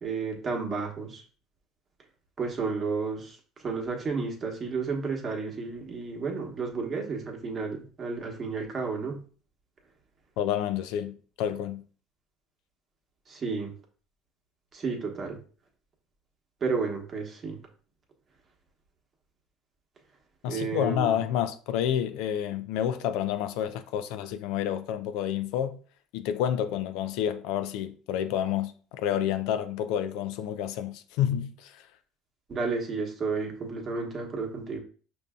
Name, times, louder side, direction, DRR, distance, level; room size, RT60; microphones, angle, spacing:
voice 1, 0.0-1.2 2.4-9.2 13.3-13.7 14.7-15.4 16.6-17.6 20.5-21.2 32.5-34.8, right 4 dB, 35° right, 1.1 m, -32 dB
voice 2, 10.4-11.8 20.4-25.8 26.1-31.8, left 10 dB, 75° left, 0.3 m, -29 dB
5.3 x 2.6 x 2.3 m
supercardioid pair, 95°, 0 cm